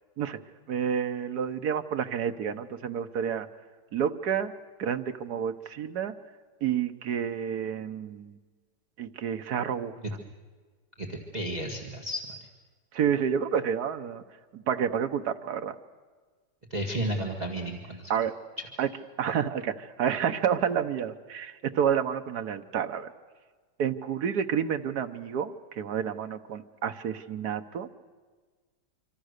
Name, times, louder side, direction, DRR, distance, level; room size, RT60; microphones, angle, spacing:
voice 1, 0.7-3.5 3.9-4.5 4.8-6.1 6.6-8.4 9.0-10.0 12.9-14.2 14.5-15.7 18.1-18.4 18.8-18.9 19.2-23.1 23.8-27.9, right 8 dB, 70° right, 8 dB, 1.6 m, -29 dB
voice 2, 11.0-12.5 16.7-18.1, right 1 dB, 25° right, 1 dB, 1.9 m, -33 dB
26.0 x 25.0 x 6.6 m, 1.4 s
omnidirectional pair, 1.8 m